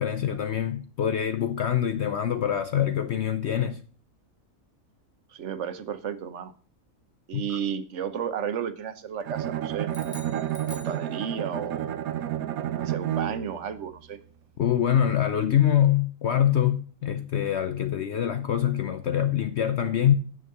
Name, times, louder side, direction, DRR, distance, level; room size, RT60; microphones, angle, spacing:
voice 1, 0.0-3.8 7.3-7.4 14.6-20.1, left 10 dB, 60° left, 0.8 m, -24 dB
voice 2, 5.3-6.5 7.3-9.9 10.7-12.0 12.8-14.2, right 8 dB, 60° right, 1.2 m, -33 dB
Bowed string instrument, 9.3-13.6, right 11 dB, 90° right, 1.1 m, -30 dB
sound 1, 9.9-11.7, left 2 dB, 20° left, 1.6 m, -47 dB
9.2 x 6.5 x 6.7 m
omnidirectional pair, 1.5 m